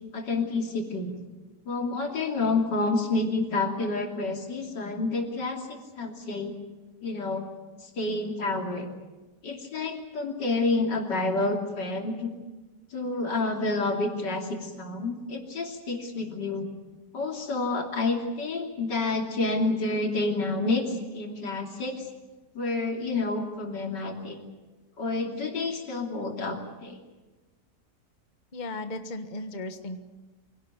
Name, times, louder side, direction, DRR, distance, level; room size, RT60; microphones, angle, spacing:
voice 1, 0.1-1.2 1.6-6.5 7.0-7.4 7.8-8.9 9.4-12.3 12.9-16.7 17.1-22.1 22.5-24.4 25.0-27.0, left 3 dB, 90° left, 2 dB, 3.5 m, -29 dB
voice 2, 28.5-30.0, left 2 dB, 30° left, 8 dB, 1.4 m, -36 dB
25.0 x 17.5 x 9.1 m, 1.2 s
omnidirectional pair, 1.8 m